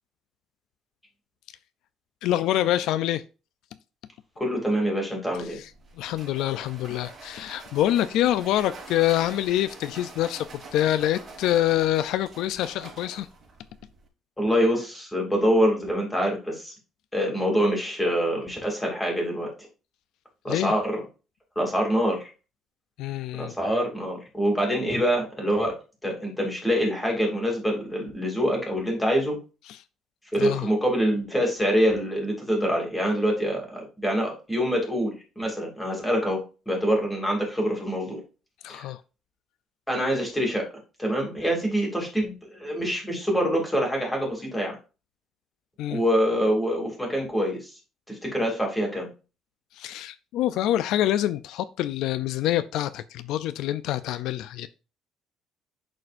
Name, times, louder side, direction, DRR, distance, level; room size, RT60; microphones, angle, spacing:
voice 1, 2.2-3.2 5.4-5.7 6.0-10.5 10.7-13.3 20.5-20.7 23.0-23.5 29.7-29.8 30.4-30.7 38.6-39.0 45.8-46.0 49.7-54.7, left 13 dB, 75° left, 0.3 m, -26 dB
voice 2, 4.4-5.6 14.4-16.7 17.1-19.5 20.4-21.0 21.6-22.3 23.4-29.4 30.4-38.2 38.7-38.8 39.9-40.6 41.0-44.8 45.9-47.7 48.1-49.1, equal, 5° left, 2.6 m, -25 dB
sound 1, 5.3-14.1, right 3 dB, 35° right, 3.4 m, -46 dB
11.0 x 4.2 x 2.5 m
cardioid pair, 135°, 0 cm